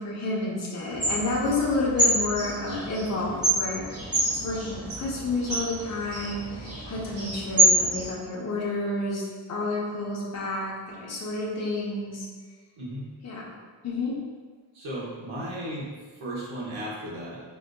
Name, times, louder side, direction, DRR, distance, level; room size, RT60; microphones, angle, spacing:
voice 1, 0.0-3.9 4.4-9.2 9.5-12.3 13.2-13.4 13.8-14.1, left 2 dB, 35° left, -5 dB, 0.7 m, -30 dB
sound 1, 0.9-8.1, right 1 dB, 30° right, 1.1 m, -27 dB
voice 2, 14.7-15.9 16.2-17.4, right 1 dB, 85° right, -5 dB, 1.1 m, -35 dB
4.6 x 2.5 x 2.2 m, 1.5 s
wide cardioid pair, 130°, 47 cm